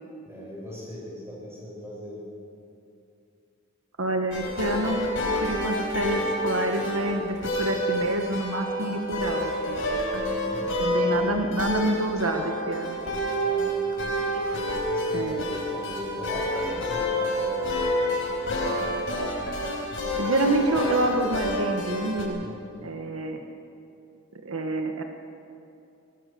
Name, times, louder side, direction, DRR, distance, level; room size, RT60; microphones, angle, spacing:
voice 1, 0.3-2.2 10.1-10.7 13.4-14.3 14.5-15.5 15.7-17.8 22.4-22.9, left 1 dB, 10° right, -5 dB, 7.2 m, -40 dB
voice 2, 4.0-5.1 5.4-10.0 10.8-13.0 15.1-15.4 20.1-22.5 22.8-23.4 24.4-25.0, right 2 dB, 85° right, 4 dB, 1.4 m, -27 dB
sound 1, 4.3-22.2, equal, 70° left, 5.2 m, -28 dB
22.0 x 19.0 x 6.9 m, 2.6 s
head